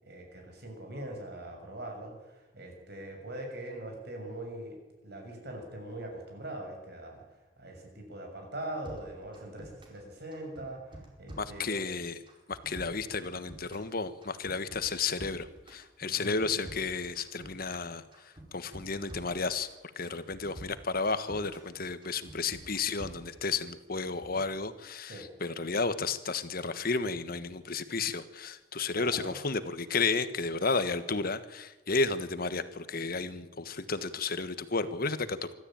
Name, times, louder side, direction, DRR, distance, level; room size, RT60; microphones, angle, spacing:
voice 1, 0.0-7.2 7.6-11.8 16.0-16.4 25.1-25.3 28.9-29.4, right 1 dB, 60° right, 3 dB, 6.5 m, -42 dB
sound 1, 8.8-10.0 10.3-11.9 12.3-13.9 14.2-15.8 16.2-17.8 18.1-19.7 20.1-21.7 22.0-23.6 24.0-24.4, right 1 dB, 25° right, 4.8 m, -48 dB
voice 2, 11.4-12.2 12.5-19.7 19.9-35.5, left 4 dB, 55° left, 12 dB, 1.4 m, -32 dB
25.5 x 13.5 x 8.9 m, 1.1 s
head